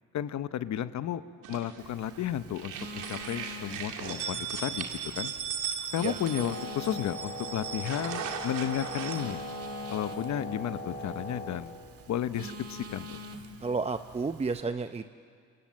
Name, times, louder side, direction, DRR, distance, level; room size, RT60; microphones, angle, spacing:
voice 1, 0.1-1.2 1.5-4.9 5.1-5.3 5.9-9.4 9.9-11.7 12.1-13.1, left 10 dB, 65° left, 13 dB, 0.9 m, -33 dB
sound 1, 1.4-2.2 2.5-9.2, right 7 dB, 85° right, 2.3 m, -37 dB
Telephone, 1.8-14.6, right 1 dB, 50° right, 1.8 m, -46 dB
Wind instrument woodwind instrument, 6.3-11.6, left 1 dB, 35° left, 5.3 m, -40 dB
voice 2, 13.6-15.2, right 4 dB, 20° right, 9 dB, 0.7 m, -31 dB
27.5 x 26.5 x 7.6 m, 2.2 s
cardioid pair, 90°, 30 cm